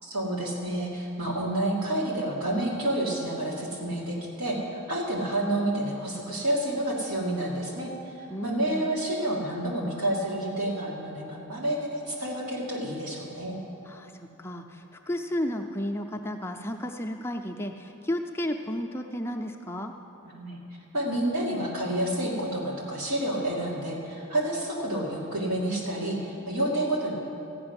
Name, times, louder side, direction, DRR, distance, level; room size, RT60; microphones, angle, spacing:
voice 1, 0.0-7.9 8.2-13.6 20.2-20.6 20.9-27.1, right 1 dB, 80° right, -3 dB, 2.6 m, -29 dB
voice 2, 8.3-8.9 13.9-19.9, equal, 10° left, 3 dB, 0.5 m, -33 dB
14.0 x 6.0 x 9.7 m, 2.9 s
head